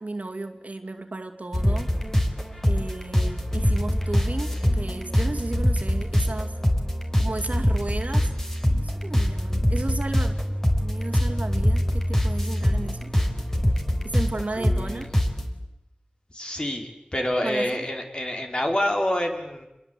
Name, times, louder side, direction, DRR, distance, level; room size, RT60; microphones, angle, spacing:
voice 1, 0.0-1.9 2.6-6.6 7.2-8.3 8.7-13.1 14.0-15.1 17.4-17.8, right 2 dB, 60° right, 5 dB, 2.5 m, -34 dB
sound 1, 1.5-15.5, equal, 15° left, 4.3 m, -24 dB
voice 2, 14.6-15.1 16.3-19.7, left 1 dB, 35° left, 3 dB, 4.9 m, -27 dB
28.5 x 22.0 x 8.5 m, 0.91 s
wide cardioid pair, 60°, 3 cm